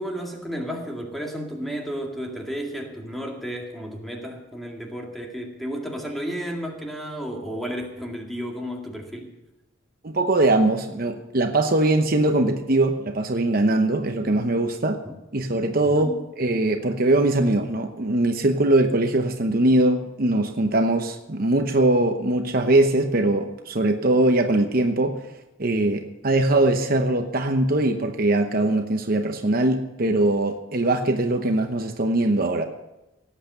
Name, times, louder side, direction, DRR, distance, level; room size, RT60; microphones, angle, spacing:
voice 1, 0.0-9.3 15.0-15.2 15.8-16.2, equal, ahead, 0 dB, 2.1 m, -32 dB
voice 2, 10.0-15.0 15.3-16.1 16.4-25.2 25.6-32.6, right 2 dB, 50° right, 5 dB, 0.9 m, -21 dB
18.0 x 8.3 x 6.7 m, 0.96 s
head